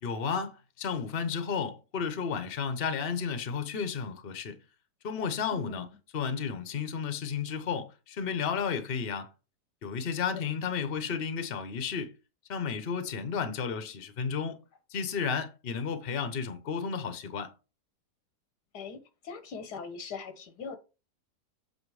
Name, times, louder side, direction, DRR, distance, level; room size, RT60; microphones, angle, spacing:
voice 1, 0.0-4.6 5.0-5.9 6.1-9.3 9.8-12.1 12.5-14.6 14.9-17.5, left 6 dB, 40° left, 1.0 m, -32 dB
voice 2, 5.5-5.8 10.3-10.4 18.7-20.8, left 5 dB, 85° left, 1.7 m, -41 dB
7.8 x 4.1 x 4.8 m
omnidirectional pair, 1.7 m